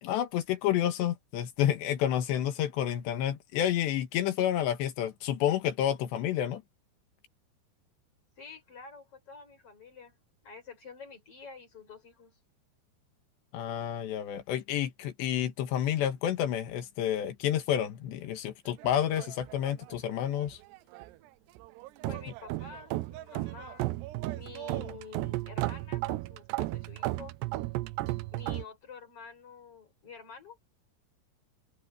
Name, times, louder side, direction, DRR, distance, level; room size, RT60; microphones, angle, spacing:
voice 1, 0.0-6.6 13.5-20.6, left 10 dB, 85° left, 3.7 m, -29 dB
voice 2, 8.4-10.2 10.4-12.4 22.0-23.9 24.3-27.4 28.3-30.6, left 5 dB, 35° left, 6.0 m, -48 dB
sound 1, 18.8-20.1 20.4-21.1 21.6-28.6, right 18 dB, 85° right, 2.8 m, -35 dB
open air
omnidirectional pair, 4.9 m